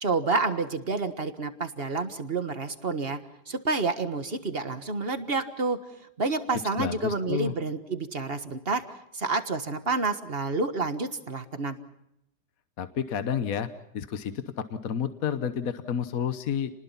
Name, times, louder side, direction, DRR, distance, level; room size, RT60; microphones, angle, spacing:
voice 1, 0.0-3.2 3.5-5.8 6.2-8.8 9.1-11.8, right 3 dB, 35° right, 9 dB, 1.6 m, -29 dB
voice 2, 6.8-7.5 12.8-13.7 13.9-16.7, left 8 dB, 55° left, 10 dB, 1.4 m, -30 dB
29.5 x 20.5 x 5.8 m, 0.81 s
omnidirectional pair, 1.9 m